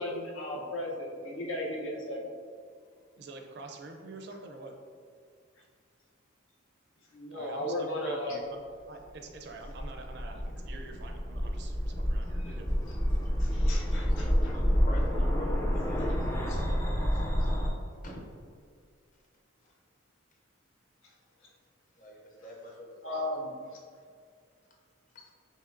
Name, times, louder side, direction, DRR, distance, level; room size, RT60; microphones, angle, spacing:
voice 1, 0.0-2.3 7.1-8.4 12.4-12.6 12.9-13.0 13.4-14.6 16.5-16.6 23.0-23.8, left 1 dB, 75° left, -2 dB, 0.8 m, -36 dB
voice 2, 3.2-4.7 7.3-12.7, right 3 dB, 55° right, 3 dB, 0.4 m, -47 dB
sound 1, 9.3-17.7, equal, 10° left, 0.4 m, -29 dB
voice 3, 12.8-13.3 14.0-17.1 18.0-18.2 22.0-23.3, equal, 40° left, -1 dB, 0.7 m, -46 dB
5.3 x 3.1 x 2.5 m, 2.1 s
head